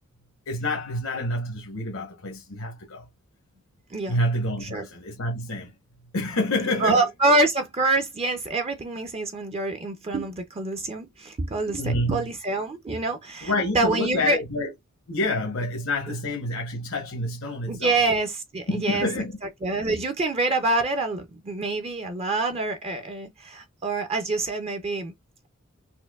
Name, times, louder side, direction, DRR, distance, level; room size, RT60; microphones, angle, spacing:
voice 1, 0.5-3.1 4.1-5.7 6.1-7.1 11.8-12.3 13.4-14.7 15.1-18.0 18.7-19.4, left 1 dB, 85° left, 0.9 m, -28 dB
voice 2, 6.8-14.4 17.7-19.1 19.6-25.1, right 2 dB, 30° right, 0.4 m, -26 dB
4.3 x 2.5 x 2.2 m
head